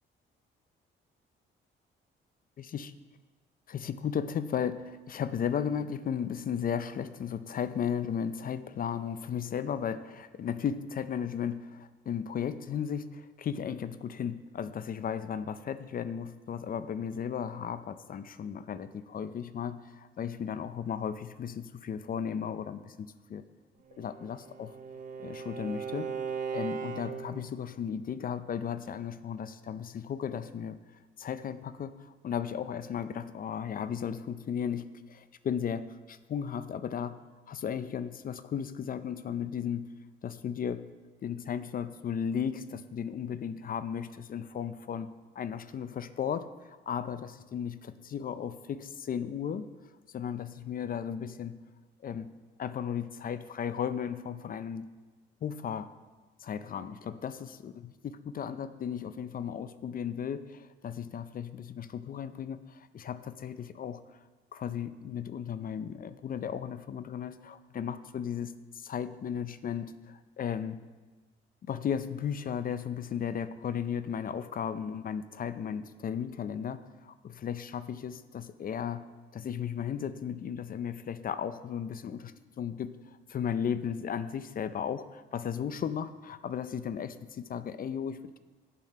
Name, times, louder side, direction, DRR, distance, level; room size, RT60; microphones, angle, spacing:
voice 1, 2.6-2.9 3.7-23.5 23.9-24.7 25.2-26.2 26.5-30.8 31.2-37.2 37.5-39.9 40.2-40.9 41.2-49.7 50.1-51.6 52.0-52.3 52.6-54.9 55.4-55.9 56.4-64.2 64.5-70.8 71.7-79.0 79.3-88.4, left 8 dB, 45° left, 13 dB, 0.5 m, -35 dB
Bowed string instrument, 23.9-27.5, right 6 dB, 40° right, 1.0 m, -38 dB
7.6 x 7.5 x 5.5 m, 1.3 s
cardioid pair, 90°, 20 cm